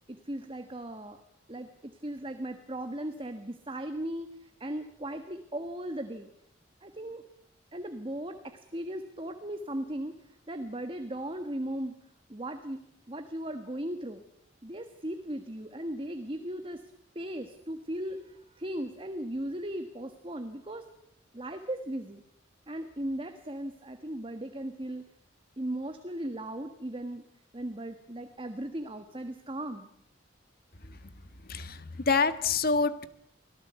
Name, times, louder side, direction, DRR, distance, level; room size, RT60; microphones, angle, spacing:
voice 1, 0.1-1.2 1.5-6.3 6.8-7.2 7.7-12.0 12.3-14.2 14.6-20.9 21.3-22.2 22.7-25.1 25.6-27.2 27.5-29.9, right 1 dB, 30° right, 7 dB, 1.5 m, -37 dB
voice 2, 30.8-31.1 31.4-33.0, left 4 dB, 50° left, 12 dB, 1.5 m, -28 dB
25.5 x 18.0 x 8.2 m, 0.73 s
head